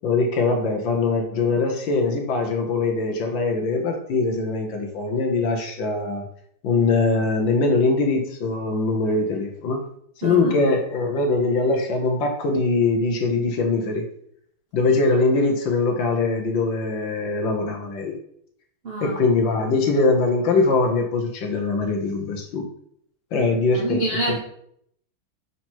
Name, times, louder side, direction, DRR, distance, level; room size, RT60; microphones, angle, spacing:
voice 1, 0.0-6.2 6.6-9.8 10.2-14.0 14.7-18.2 19.0-22.7 23.3-24.4, left 3 dB, 65° left, 2 dB, 1.6 m, -22 dB
voice 2, 10.2-10.6 18.8-19.2 23.7-24.4, right 2 dB, 80° right, -2 dB, 0.5 m, -26 dB
5.7 x 4.7 x 4.4 m, 0.68 s
omnidirectional pair, 2.4 m